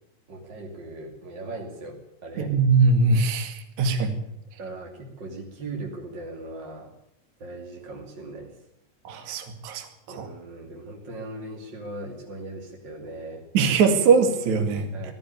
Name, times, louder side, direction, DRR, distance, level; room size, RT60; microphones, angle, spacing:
voice 1, 0.3-2.6 4.6-6.9 7.4-8.5 10.1-13.4 14.9-15.1, right 2 dB, 30° right, -1 dB, 2.6 m, -38 dB
voice 2, 2.4-4.2 9.0-10.3 13.5-15.1, right 4 dB, 50° right, 4 dB, 3.0 m, -22 dB
19.0 x 14.5 x 9.5 m, 0.78 s
omnidirectional pair, 5.1 m